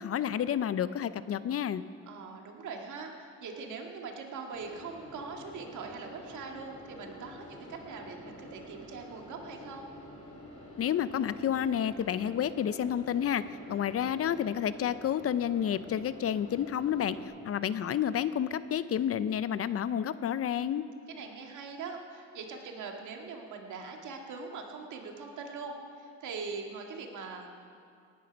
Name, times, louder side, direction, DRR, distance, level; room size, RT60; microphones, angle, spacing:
voice 1, 0.0-1.8 10.8-13.4 13.7-20.9, left 9 dB, 50° left, 15 dB, 0.6 m, -30 dB
voice 2, 2.1-9.9 21.1-27.5, right 4 dB, 80° right, 2 dB, 1.9 m, -42 dB
sound 1, 4.5-17.3, left 1 dB, 80° left, 3.8 m, -48 dB
18.0 x 10.5 x 5.2 m, 2.3 s
cardioid pair, 90°, 30 cm